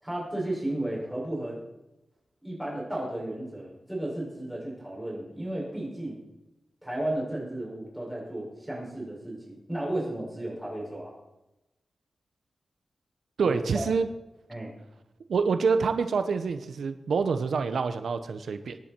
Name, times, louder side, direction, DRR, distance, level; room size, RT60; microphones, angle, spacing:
voice 1, 0.0-1.6 2.4-6.2 6.8-11.1 13.4-13.8 14.5-14.7, right 1 dB, 5° right, -4 dB, 6.4 m, -33 dB
voice 2, 13.4-14.1 15.3-18.8, right 5 dB, 85° right, 9 dB, 0.8 m, -26 dB
22.5 x 10.5 x 4.5 m, 0.95 s
wide cardioid pair, 155°, 0 cm